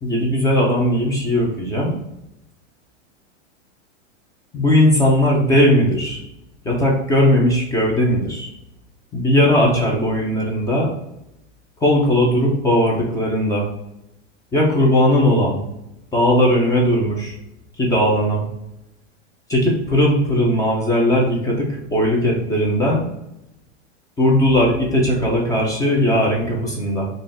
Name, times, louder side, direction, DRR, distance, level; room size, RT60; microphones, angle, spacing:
voice 1, 0.0-1.9 4.5-6.2 6.6-8.5 9.1-10.9 11.8-13.7 14.5-15.6 16.1-17.3 17.8-18.4 19.5-23.1 24.2-27.1, left 1 dB, 10° left, -2 dB, 0.5 m, -18 dB
3.9 x 2.6 x 3.4 m, 0.86 s
supercardioid pair, 145°, 36 cm